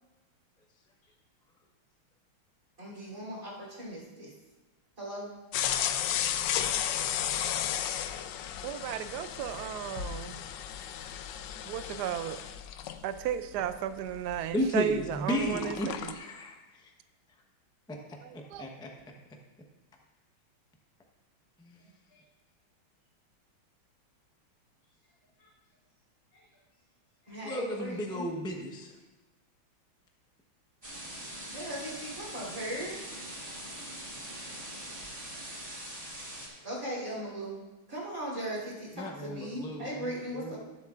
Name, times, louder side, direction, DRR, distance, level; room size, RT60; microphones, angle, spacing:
voice 1, 2.8-4.3 5.0-5.3 21.8-21.9 27.3-28.3 31.5-33.0 36.6-37.6 37.9-40.6, right 1 dB, 40° right, -9 dB, 3.7 m, -38 dB
sound 1, 5.5-15.1 15.4-16.1, left 10 dB, 75° left, 1.1 m, -34 dB
voice 2, 8.6-10.4 11.7-12.4 13.0-16.1 18.2-18.7, right 10 dB, 80° right, 11 dB, 0.9 m, -35 dB
voice 3, 14.5-16.8 18.3-18.9 21.6-21.8 27.4-28.9 39.0-40.5, equal, 5° left, 1 dB, 0.3 m, -34 dB
voice 4, 24.8-25.5 25.9-26.0 26.3-26.8 27.2-27.3 31.1-31.3 34.9-35.8 36.3-37.0, left 2 dB, 40° left, -10 dB, 3.8 m, -65 dB
sound 2, 30.8-36.5, right 1 dB, 15° right, 3.6 m, -42 dB
19.5 x 7.8 x 2.5 m, 1.1 s
omnidirectional pair, 2.3 m